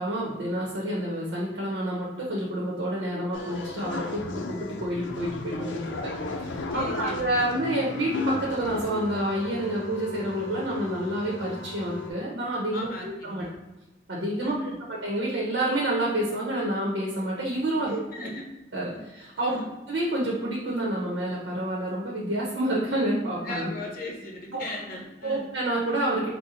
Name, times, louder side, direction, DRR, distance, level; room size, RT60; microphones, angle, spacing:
voice 1, 0.0-6.1 6.4-13.4 14.1-14.6 15.0-18.0 18.7-19.5 19.9-23.7 24.5-24.6 25.2-26.3, right 1 dB, 75° right, -4 dB, 0.8 m, -28 dB
sound 1, 3.3-12.1, left 2 dB, 85° left, 0.5 m, -35 dB
voice 2, 6.7-7.5 12.7-13.5 14.4-14.8 17.8-18.4 18.9-19.0 19.4-19.7 23.4-25.5, left 1 dB, 50° left, -1 dB, 0.8 m, -38 dB
4.1 x 2.1 x 3.8 m, 1.1 s
head